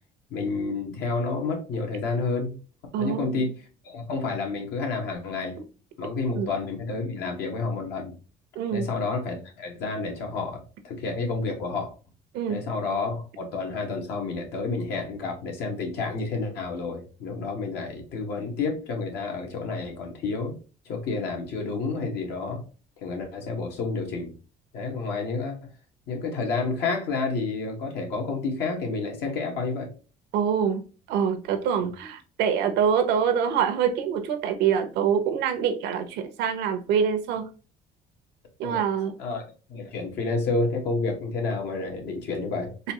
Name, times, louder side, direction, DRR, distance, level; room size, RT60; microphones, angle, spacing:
voice 1, 0.3-2.6 3.0-3.5 3.8-5.6 6.0-8.1 8.7-11.9 12.5-20.6 20.8-22.6 23.0-24.3 24.7-25.6 26.1-29.9 31.8-31.9 38.6-38.8 39.2-42.7, left 3 dB, 80° left, 1 dB, 1.5 m, -30 dB
voice 2, 2.9-3.5 6.3-6.5 8.6-8.8 12.3-12.6 30.3-30.8 31.1-37.5 38.6-39.1 42.8-42.9, right 7 dB, 85° right, 8 dB, 0.8 m, -25 dB
4.1 x 2.8 x 2.8 m, 0.36 s
cardioid pair, 110°, 17 cm